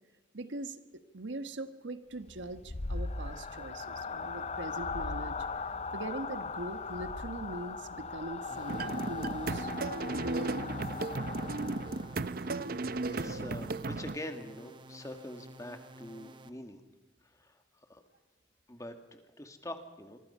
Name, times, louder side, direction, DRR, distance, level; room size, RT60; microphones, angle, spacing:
voice 1, 0.3-5.5 5.9-9.7 10.1-10.8, right 2 dB, 80° right, 10 dB, 1.4 m, -41 dB
sound 1, 2.2-12.2, left 4 dB, 35° left, 0.6 m, -39 dB
sound 2, 8.5-16.5, right 1 dB, 25° right, 1.1 m, -52 dB
sound 3, 8.7-14.2, right 3 dB, 50° right, 0.7 m, -35 dB
voice 2, 13.1-16.8 17.2-17.6 17.9-18.0 18.7-20.2, left 1 dB, 15° left, 7 dB, 1.8 m, -44 dB
25.5 x 23.5 x 5.6 m, 1.2 s
head